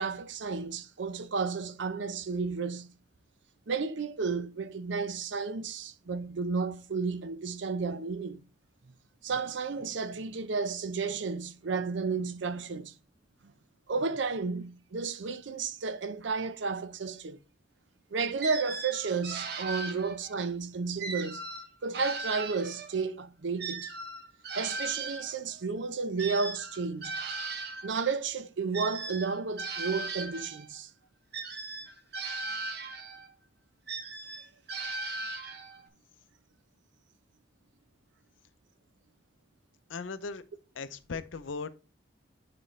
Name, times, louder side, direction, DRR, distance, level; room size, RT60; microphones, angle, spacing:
voice 1, 0.0-2.9 3.7-8.4 9.2-12.9 13.9-17.4 18.1-21.4 21.8-23.9 24.5-27.1 27.8-30.9, right 4 dB, 75° right, 0.6 m, -32 dB
sound 1, 18.4-20.4 21.0-23.1 23.6-27.9 28.7-30.7 31.3-33.3 33.9-35.9, right 3 dB, 55° right, 1.0 m, -38 dB
voice 2, 39.9-40.4 40.7-41.7, left 4 dB, 90° left, 0.6 m, -37 dB
8.7 x 4.3 x 3.2 m
head